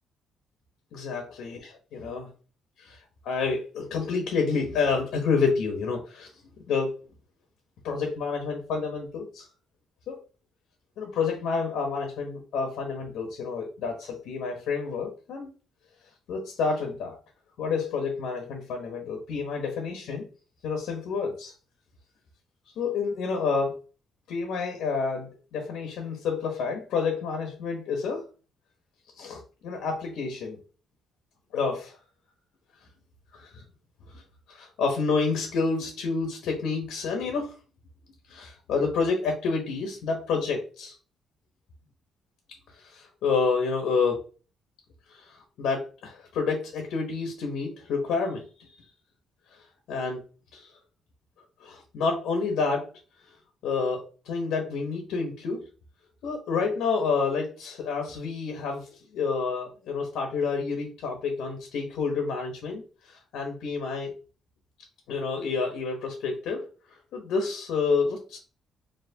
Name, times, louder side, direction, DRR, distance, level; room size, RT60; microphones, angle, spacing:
voice 1, 0.9-2.3 2.8-3.0 3.2-6.3 6.7-6.9 7.8-9.5 10.1-10.2 11.0-15.5 16.3-17.2 17.6-20.3 20.6-21.5 22.8-23.8 24.3-28.3 29.2-30.6 31.5-32.0 33.3-33.6 34.1-34.2 34.5-37.5 38.3-41.0 42.7-44.2 45.1-48.8 49.9-50.2 50.5-50.7 51.6-52.9 53.6-55.6 56.2-64.1 65.1-68.4, left 4 dB, 80° left, 3 dB, 1.0 m, -29 dB
4.6 x 2.9 x 2.8 m, 0.37 s
cardioid pair, 90°, 0 cm